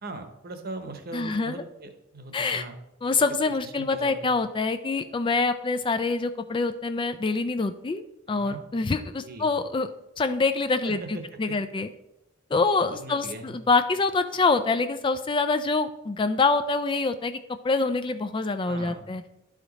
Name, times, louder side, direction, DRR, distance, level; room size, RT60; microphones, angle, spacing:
voice 1, 0.0-2.7 3.5-4.4 8.3-8.6 9.2-9.5 10.8-11.4 12.9-13.6 18.6-19.0, right 2 dB, 50° right, 6 dB, 1.0 m, -40 dB
voice 2, 1.1-1.6 2.3-2.7 3.0-8.0 8.3-9.9 10.2-11.9 12.5-17.4 17.6-19.2, left 3 dB, 25° left, 10 dB, 0.3 m, -25 dB
11.0 x 4.9 x 4.1 m, 0.88 s
head